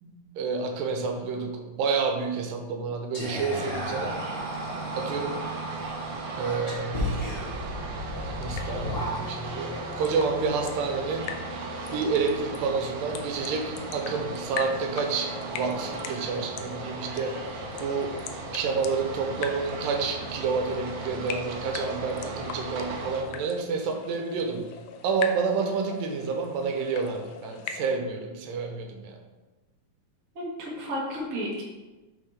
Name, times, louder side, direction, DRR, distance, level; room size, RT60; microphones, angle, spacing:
voice 1, 0.0-4.2 5.0-5.4 6.4-7.4 8.4-11.3 11.9-17.4 17.8-18.2 18.5-24.7 25.0-29.2, right 5 dB, 90° right, 3 dB, 2.5 m, -29 dB
Whispering, 3.1-9.6, equal, 40° left, 0.8 m, -34 dB
sound 1, 3.5-23.2, right 3 dB, 70° right, 1.9 m, -37 dB
sound 2, 8.1-28.0, left 7 dB, 80° left, 2.1 m, -41 dB
voice 2, 30.3-31.6, equal, 50° right, -4 dB, 0.9 m, -32 dB
5.9 x 5.5 x 3.5 m, 1.2 s
omnidirectional pair, 4.0 m